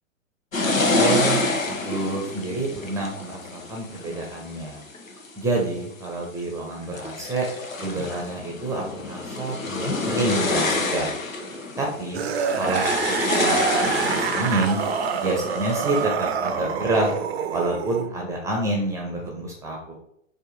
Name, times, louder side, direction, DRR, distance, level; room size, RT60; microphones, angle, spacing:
sound 1, 0.5-5.3 5.9-6.4 6.8-16.1, left 2 dB, 85° left, 0.9 m, -27 dB
voice 1, 0.9-4.8 5.4-7.5 7.8-11.1 11.8-12.2 12.5-14.8 15.2-17.2 17.5-19.9, right 2 dB, 10° right, -1 dB, 0.7 m, -28 dB
sound 2, 12.1-18.1 19.2-19.3, right 6 dB, 55° right, 0.5 m, -27 dB
4.4 x 2.7 x 4.0 m, 0.71 s
figure-of-eight pair, 110°, 39 cm